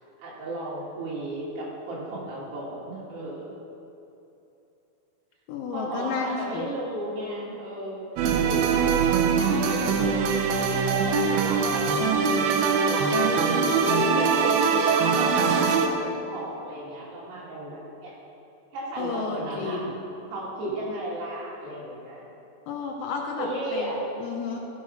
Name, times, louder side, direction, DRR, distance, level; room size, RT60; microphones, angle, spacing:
voice 1, 0.2-3.5 5.7-8.0 8.4-18.1 18.7-19.8 20.3-22.2 23.4-24.0, right 1 dB, 70° right, -6 dB, 4.3 m, -35 dB
voice 2, 5.5-6.7 19.0-19.9 22.7-24.6, left 5 dB, 85° left, 0 dB, 2.1 m, -32 dB
sound 1, 8.2-15.9, right 5 dB, 85° right, 2.2 m, -22 dB
14.5 x 6.3 x 5.3 m, 2.8 s
omnidirectional pair, 5.2 m